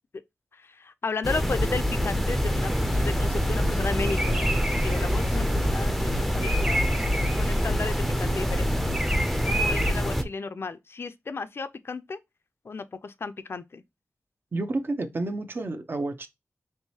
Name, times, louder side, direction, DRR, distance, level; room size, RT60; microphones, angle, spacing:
voice 1, 0.5-2.7 3.0-4.5 4.8-6.9 7.4-8.7 9.5-12.2 12.6-13.8, left 4 dB, 55° left, 0.4 m, -34 dB
sound 1, 1.2-10.2, equal, ahead, 0.5 m, -25 dB
Bird vocalization bird call bird song, 2.6-9.9, right 1 dB, 20° right, 0.9 m, -33 dB
voice 2, 14.5-16.3, right 2 dB, 45° right, 0.6 m, -30 dB
4.6 x 3.1 x 2.7 m
wide cardioid pair, 100°, 5 cm